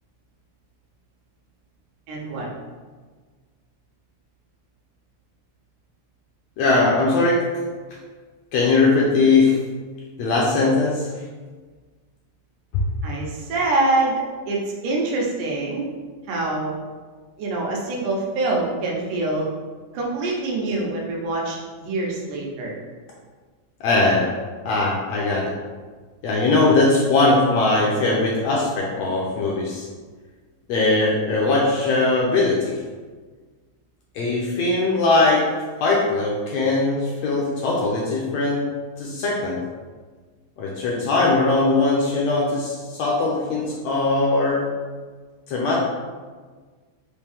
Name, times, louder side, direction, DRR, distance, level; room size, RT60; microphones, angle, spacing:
voice 1, 2.1-2.5 13.0-15.9 16.3-16.7 17.4-19.5 19.9-22.7, right 2 dB, 85° right, -2 dB, 2.4 m, -25 dB
voice 2, 6.6-7.5 8.5-9.6 10.2-11.1 12.7-12.8 23.8-24.3 24.6-25.5 26.2-29.9 30.7-32.7 34.1-35.5 35.8-38.7 39.0-39.6 40.6-44.7 45.5-45.8, left 3 dB, 75° left, -4 dB, 1.5 m, -20 dB
5.8 x 2.6 x 3.4 m, 1.4 s
omnidirectional pair, 3.5 m